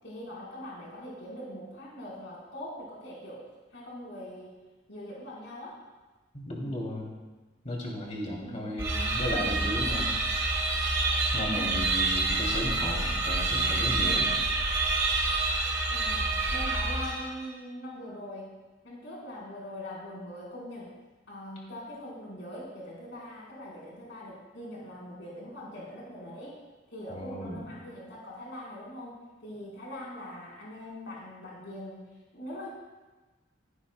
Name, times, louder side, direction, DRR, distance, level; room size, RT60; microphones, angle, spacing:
voice 1, 0.0-4.5 4.9-5.8 8.4-8.8 15.9-18.6 18.8-20.9 21.3-26.6 26.9-32.0 32.3-32.7, left 1 dB, 75° left, -5 dB, 4.2 m, -42 dB
voice 2, 6.3-7.1 7.6-10.2 11.3-14.3 27.1-27.6, left 1 dB, 35° left, -2 dB, 2.7 m, -34 dB
sound 1, 8.8-17.5, right 2 dB, 15° right, 3.3 m, -27 dB
16.0 x 14.5 x 2.2 m, 1.2 s
head